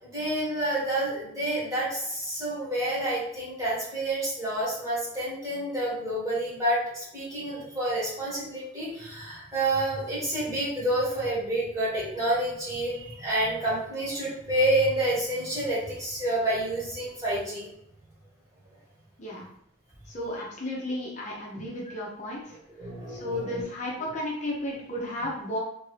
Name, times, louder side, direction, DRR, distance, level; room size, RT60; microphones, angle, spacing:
voice 1, 0.0-17.7 22.8-23.6, right 1 dB, 15° right, -8 dB, 1.2 m, -29 dB
voice 2, 20.1-22.6 23.1-25.6, left 1 dB, 35° left, -4 dB, 0.6 m, -33 dB
2.9 x 2.6 x 3.1 m, 0.75 s
head